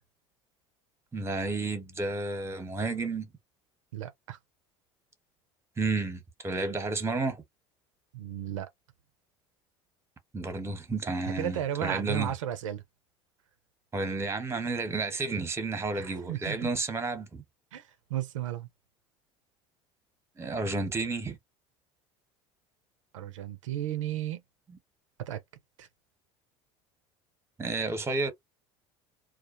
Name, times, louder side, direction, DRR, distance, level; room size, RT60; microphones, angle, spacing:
voice 1, 1.1-3.3 5.8-7.4 10.3-12.3 13.9-17.4 20.4-21.4 27.6-28.3, right 3 dB, 15° right, 0.9 m, -31 dB
voice 2, 3.9-4.4 8.1-8.7 11.4-12.8 15.9-16.7 17.7-18.7 23.1-24.4 25.2-25.4 25.8-25.9, right 12 dB, 85° right, 0.5 m, -34 dB
2.3 x 2.1 x 2.5 m
hypercardioid pair, 75°, 16 cm